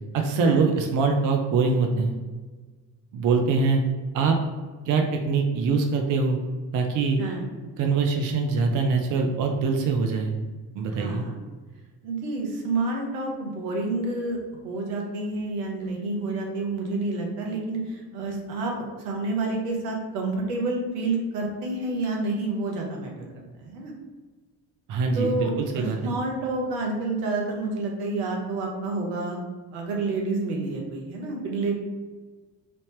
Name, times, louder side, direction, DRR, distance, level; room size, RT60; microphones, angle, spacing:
voice 1, 0.1-2.1 3.1-3.8 4.1-4.4 4.9-6.4 6.7-7.2 7.8-10.4 10.8-11.3 24.9-26.1, right 4 dB, 45° right, 3 dB, 0.5 m, -23 dB
voice 2, 11.0-11.3 12.0-18.7 19.0-23.3 23.6-23.9 25.1-29.4 29.7-31.7, right 2 dB, 75° right, 0 dB, 0.9 m, -29 dB
3.2 x 2.7 x 3.1 m, 1.4 s
figure-of-eight pair, 50°, 47 cm